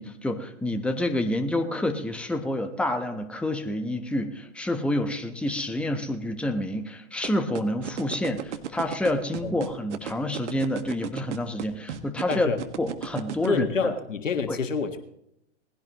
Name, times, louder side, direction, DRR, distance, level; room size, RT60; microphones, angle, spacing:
voice 1, 0.0-12.5 12.8-13.9 14.5-14.6, left 1 dB, 5° left, 6 dB, 1.1 m, -28 dB
sound 1, 7.2-13.5, right 9 dB, 70° right, 1.8 m, -33 dB
voice 2, 12.3-12.6 13.4-15.0, left 5 dB, 85° left, 7 dB, 1.7 m, -27 dB
20.0 x 16.5 x 3.1 m, 0.77 s
hypercardioid pair, 120°, 37 cm